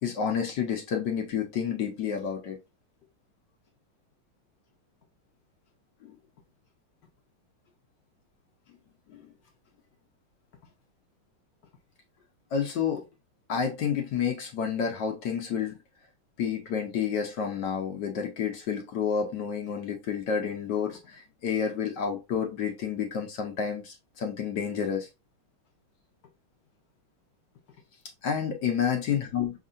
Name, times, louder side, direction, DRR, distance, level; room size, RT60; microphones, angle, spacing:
voice 1, 0.0-2.6 6.0-6.2 9.1-9.3 12.5-13.0 13.5-15.8 16.4-25.1 28.2-29.5, left 7 dB, 65° left, 1.2 m, -30 dB
5.3 x 3.7 x 2.4 m
omnidirectional pair, 2.3 m